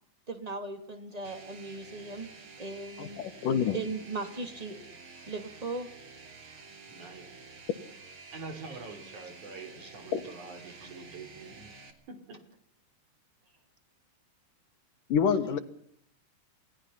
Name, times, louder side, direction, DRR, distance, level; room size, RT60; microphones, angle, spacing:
voice 1, 0.3-2.3 2.6-3.2 3.7-4.8 5.2-5.9 9.8-9.9 10.7-10.9, right 3 dB, 10° right, 6 dB, 2.3 m, -38 dB
sound 1, 1.2-11.9, right 4 dB, 40° right, 3.2 m, -50 dB
voice 2, 3.0-3.8 10.1-10.2 15.1-15.6, left 7 dB, 70° left, 9 dB, 2.9 m, -27 dB
voice 3, 6.9-7.3 8.3-11.7 12.1-12.4, right 3 dB, 60° right, 7 dB, 4.7 m, -45 dB
28.5 x 18.5 x 5.7 m, 0.67 s
omnidirectional pair, 4.1 m